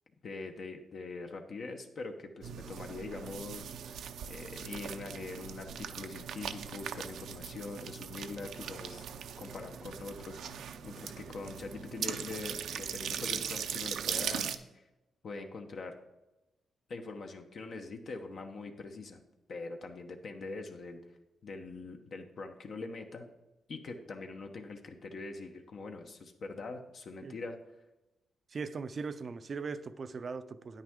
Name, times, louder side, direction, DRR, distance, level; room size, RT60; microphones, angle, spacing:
voice 1, 0.2-9.1 9.4-14.5 14.7-14.8 15.2-16.0 16.9-19.2 19.5-21.0 21.4-23.3 23.7-27.6, left 3 dB, 55° left, 0.9 m, -43 dB
sound 1, 2.4-14.6, right 8 dB, 80° right, 0.6 m, -40 dB
voice 2, 28.5-30.8, right 4 dB, 40° right, 0.5 m, -39 dB
9.9 x 9.0 x 3.7 m
cardioid pair, 135°, 0 cm